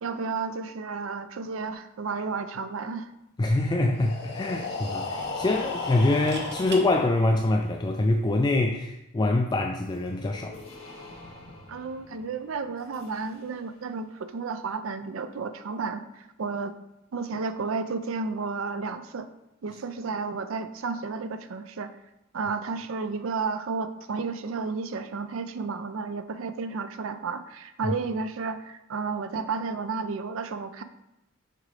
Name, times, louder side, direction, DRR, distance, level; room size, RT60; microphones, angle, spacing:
voice 1, 0.0-3.1 11.7-16.7 17.1-19.3 19.6-21.9 22.3-30.8, right 4 dB, 70° right, 11 dB, 0.4 m, -32 dB
sound 1, 3.2-3.4 3.7-3.8 6.0-6.8 8.7-8.9, right 4 dB, 55° right, 0.8 m, -40 dB
voice 2, 3.4-10.6 27.8-27.9, left 2 dB, 20° left, 2 dB, 0.3 m, -25 dB
Breathing, 3.8-7.7, left 3 dB, 55° left, 1.2 m, -35 dB
sound 2, 9.8-13.9, left 2 dB, 85° left, 1.7 m, -49 dB
6.6 x 5.0 x 3.3 m, 0.89 s
head